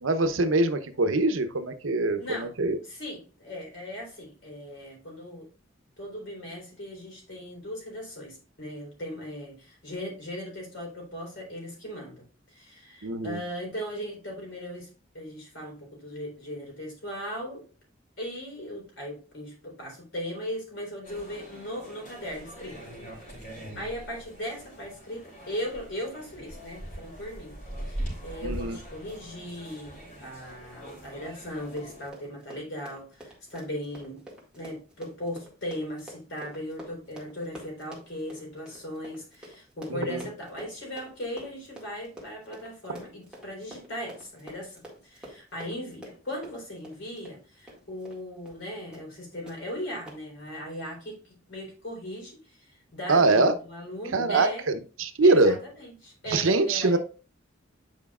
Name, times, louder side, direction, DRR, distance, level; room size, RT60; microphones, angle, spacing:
voice 1, 0.0-2.8 13.0-13.4 28.4-28.8 39.9-40.2 53.1-53.5 54.1-55.6 56.3-57.0, right 2 dB, 85° right, 9 dB, 0.8 m, -23 dB
voice 2, 2.2-2.5 2.8-5.5 6.0-14.9 15.1-17.6 18.2-22.8 23.2-34.2 34.5-54.6 55.2-57.0, equal, 65° left, -1 dB, 3.9 m, -38 dB
sound 1, 21.0-32.1, right 1 dB, 40° left, 3.5 m, -41 dB
Run, 31.7-48.2 48.5-48.6 48.9-49.2 49.5-49.6 50.1-50.2, right 1 dB, 5° right, 1.9 m, -47 dB
9.3 x 5.1 x 2.3 m, 0.36 s
head